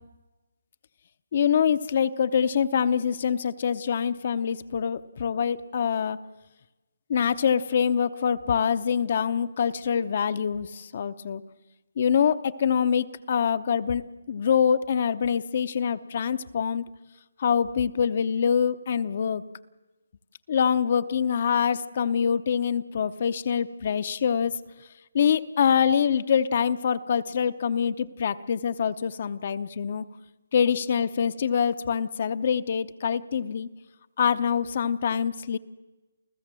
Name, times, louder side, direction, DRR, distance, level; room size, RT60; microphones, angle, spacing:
voice 1, 1.3-6.2 7.1-11.4 12.0-16.9 17.4-19.4 20.5-24.6 25.1-30.0 30.5-33.7 34.2-35.6, left 7 dB, 40° left, 12 dB, 0.7 m, -25 dB
29.0 x 15.0 x 7.6 m, 1.1 s
hypercardioid pair, 165°, 0 cm